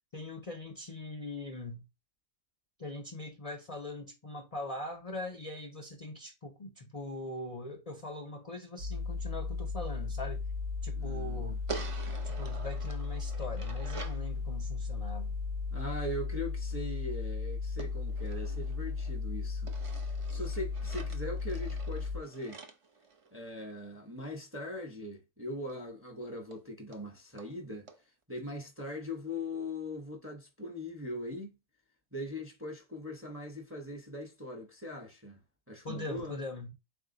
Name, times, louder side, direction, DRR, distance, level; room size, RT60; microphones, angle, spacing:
voice 1, 0.1-1.9 2.8-10.5 10.8-11.6 12.2-15.4 35.8-36.7, left 2 dB, 45° left, 0.4 m, -41 dB
sound 1, 8.8-22.2, left 4 dB, 75° right, 1.1 m, -35 dB
voice 2, 11.0-11.5 15.7-19.7 20.3-22.6 23.3-27.9 28.3-31.5 32.1-35.4 35.7-36.4, left 1 dB, 15° right, 0.6 m, -40 dB
sound 2, 11.7-14.3 17.8-19.2 19.7-23.8 25.7-25.8 26.1-26.2 26.5-26.6 26.9-27.0 27.4-27.5 27.9-28.0, right 5 dB, 60° right, 0.3 m, -46 dB
4.1 x 2.7 x 3.7 m
omnidirectional pair, 1.5 m